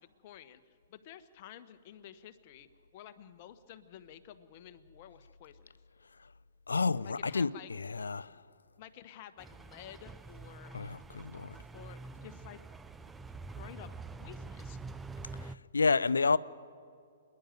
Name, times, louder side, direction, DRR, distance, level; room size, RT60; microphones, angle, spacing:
voice 1, 0.0-2.7 2.9-5.7 7.0-7.7 8.8-10.8 11.7-12.6 13.5-14.8, left 11 dB, 40° left, 11 dB, 1.1 m, -51 dB
voice 2, 6.7-8.4 10.7-11.6 15.4-16.4, left 4 dB, 75° left, 19 dB, 0.5 m, -30 dB
sound 1, 9.4-15.6, right 3 dB, 10° right, 0.5 m, -46 dB
26.5 x 10.5 x 9.2 m, 2.4 s
figure-of-eight pair, 120°, 0 cm